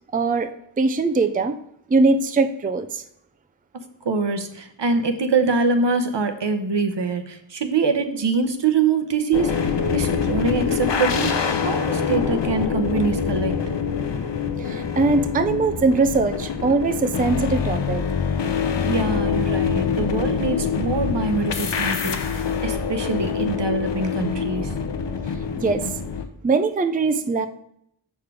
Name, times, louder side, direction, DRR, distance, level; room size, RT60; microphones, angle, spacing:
voice 1, 0.1-0.5 0.8-1.6 1.9-3.0 14.6-18.0 25.6-25.9 26.4-27.5, right 3 dB, 20° right, 9 dB, 0.4 m, -21 dB
voice 2, 3.7-13.7 18.8-24.7, right 4 dB, 70° right, 7 dB, 0.8 m, -24 dB
sound 1, 9.3-26.3, left 6 dB, 70° left, 0.7 m, -25 dB
6.5 x 5.0 x 4.7 m, 0.73 s
wide cardioid pair, 55°, 45 cm